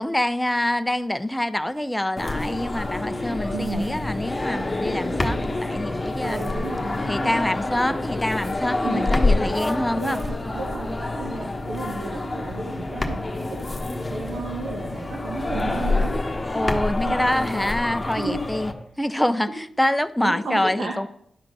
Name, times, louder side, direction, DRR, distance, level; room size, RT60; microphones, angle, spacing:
voice 1, 0.0-6.4 7.1-10.2 16.5-18.7 19.0-21.1, left 1 dB, 10° left, 0.5 m, -25 dB
sound 1, 2.2-18.7, left 2 dB, 25° left, 1.3 m, -27 dB
voice 2, 3.5-4.0 6.2-7.0 8.8-9.1 10.0-13.6 14.1-16.2 17.0-17.6 18.1-18.4 20.2-20.9, right 3 dB, 80° right, 1.4 m, -33 dB
11.0 x 3.8 x 6.6 m
cardioid pair, 65°, 0 cm